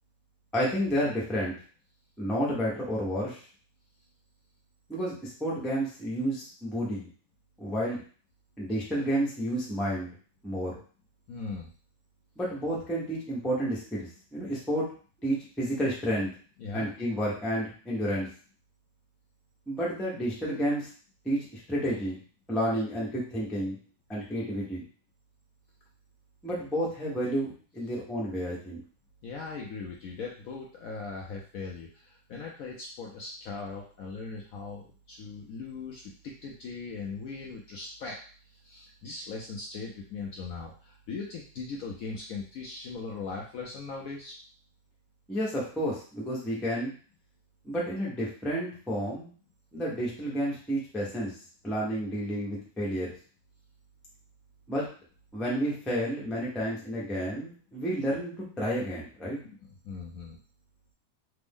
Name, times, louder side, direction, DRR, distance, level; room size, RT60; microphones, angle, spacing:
voice 1, 0.5-1.5 2.2-3.4 4.9-7.1 7.6-8.0 8.6-10.1 10.4-10.8 12.4-14.9 15.2-16.3 16.7-18.3 19.7-20.9 21.2-22.2 22.5-23.8 24.1-24.8 26.4-28.8 45.3-46.9 47.6-49.3 49.7-51.4 51.6-53.1 54.7-54.8 55.3-59.4, equal, ahead, -5 dB, 0.4 m, -30 dB
voice 2, 11.3-11.7 16.6-16.9 29.2-38.2 38.5-44.3 59.4-60.4, left 4 dB, 70° left, -1 dB, 0.8 m, -39 dB
3.4 x 2.0 x 3.5 m, 0.41 s
omnidirectional pair, 1.9 m